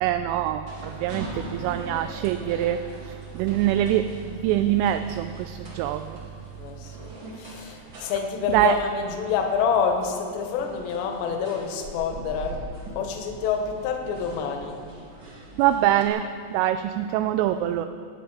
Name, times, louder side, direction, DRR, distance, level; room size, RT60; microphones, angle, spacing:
voice 1, 0.0-6.2 8.5-8.8 15.6-16.3 16.5-17.9, right 12 dB, 85° right, 8 dB, 3.0 m, -24 dB
sound 1, 0.7-16.1, right 1 dB, 50° right, 1.4 m, -42 dB
voice 2, 6.6-12.6 13.0-14.8, left 6 dB, 70° left, 3 dB, 3.1 m, -27 dB
22.5 x 9.1 x 5.0 m, 2.2 s
omnidirectional pair, 5.9 m